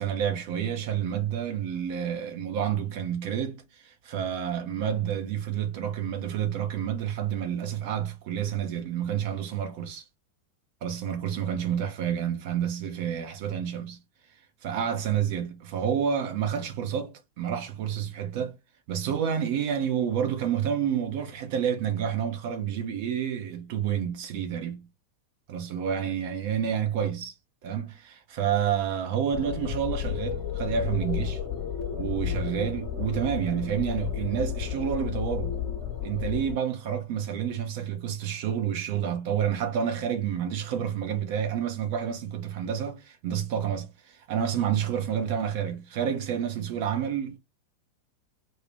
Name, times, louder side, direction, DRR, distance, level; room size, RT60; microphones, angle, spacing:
voice 1, 0.0-10.0 10.8-14.0 14.6-18.5 18.9-24.9 25.5-27.3 27.6-31.4 31.9-35.6 36.0-47.4, right 8 dB, 50° right, 0.7 m, -29 dB
sound 1, 29.3-36.5, left 9 dB, 35° left, 0.9 m, -32 dB
2.6 x 2.5 x 3.3 m
figure-of-eight pair, 90°, 0 cm